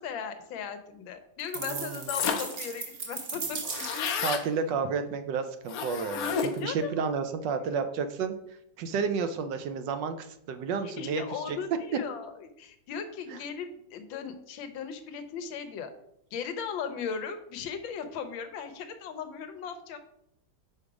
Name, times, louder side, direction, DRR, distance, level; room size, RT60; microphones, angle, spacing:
voice 1, 0.0-3.6 6.4-6.9 7.6-7.8 10.8-15.9 16.3-20.0, left 6 dB, 85° left, 8 dB, 1.5 m, -37 dB
sound 1, 1.5-4.3, right 4 dB, 45° right, 0.8 m, -37 dB
voice 2, 1.6-2.0 4.2-8.4 8.8-11.6 13.3-13.4, right 5 dB, 75° right, 9 dB, 1.2 m, -31 dB
sound 2, 2.1-2.7 3.0-3.1 3.3-4.5 5.7-6.7, left 6 dB, 65° left, 0.9 m, -31 dB
5.2 x 4.9 x 4.7 m, 0.76 s
omnidirectional pair, 2.1 m